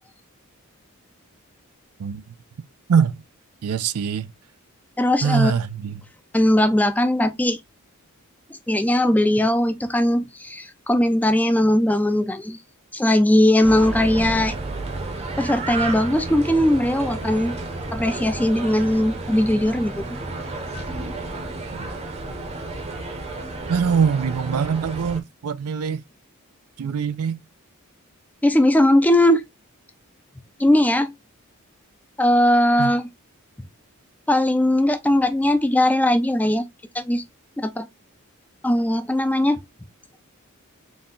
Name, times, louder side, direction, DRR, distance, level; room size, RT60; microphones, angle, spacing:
voice 1, 2.9-3.2 3.6-4.3 5.2-6.0 21.7-21.9 23.7-26.0 26.8-27.4 32.8-33.0, right 6 dB, 80° right, 0.4 m, -23 dB
voice 2, 5.0-5.5 6.3-7.6 8.7-12.6 12.9-14.5 15.4-17.6 17.9-20.2 28.4-29.4 30.6-31.1 32.2-33.1 34.3-36.7 36.9-37.2 37.6-37.9 38.6-39.6, left 1 dB, 5° left, 0.4 m, -19 dB
sound 1, 13.6-25.2, right 2 dB, 30° right, 0.7 m, -31 dB
4.1 x 2.2 x 3.7 m
head